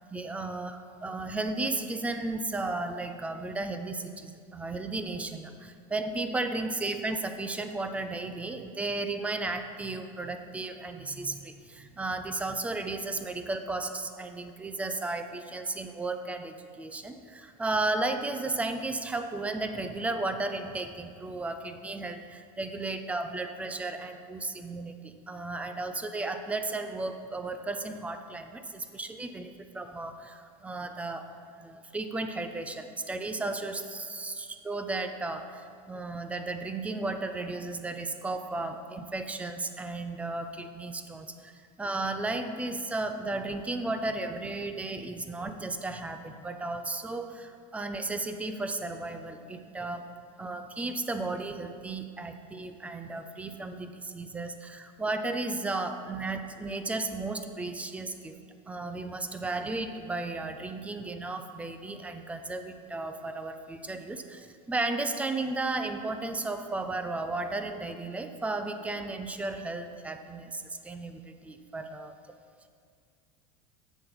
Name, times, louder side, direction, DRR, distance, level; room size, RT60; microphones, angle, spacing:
voice 1, 0.1-31.3 31.6-50.1 50.4-58.4 58.7-72.1, right 2 dB, 5° right, 7 dB, 0.3 m, -34 dB
7.4 x 7.1 x 5.9 m, 2.2 s
supercardioid pair, 160°, 18 cm